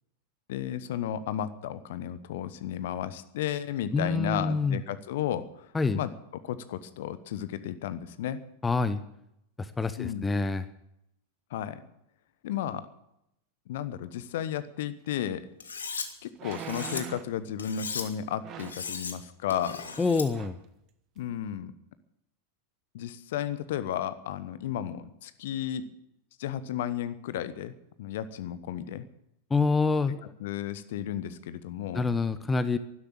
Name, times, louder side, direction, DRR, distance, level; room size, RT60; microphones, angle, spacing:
voice 1, 0.5-5.7 5.9-8.4 10.0-10.3 11.5-11.8 12.4-12.9 13.7-15.4 16.2-19.8 21.2-21.7 22.9-25.9 26.4-27.7 28.0-29.1 30.4-32.1, left 10 dB, 55° left, 14 dB, 1.0 m, -33 dB
voice 2, 3.9-4.8 5.7-6.0 8.6-9.0 9.8-10.7 20.0-20.5 29.5-30.2 31.9-32.8, left 3 dB, 10° left, 13 dB, 0.7 m, -26 dB
sound 1, 15.3-15.4 16.3-17.4 18.4-18.9 19.9-20.0 20.3-20.6 21.2-21.3, right 9 dB, 35° right, 1.1 m, -42 dB
Cutlery silverware, 15.6-16.1 16.5-17.0 17.6-18.1 18.6-19.1 19.5-20.3, left 5 dB, 70° left, 1.6 m, -37 dB
12.0 x 12.0 x 8.8 m, 0.80 s
figure-of-eight pair, 90°, 0 cm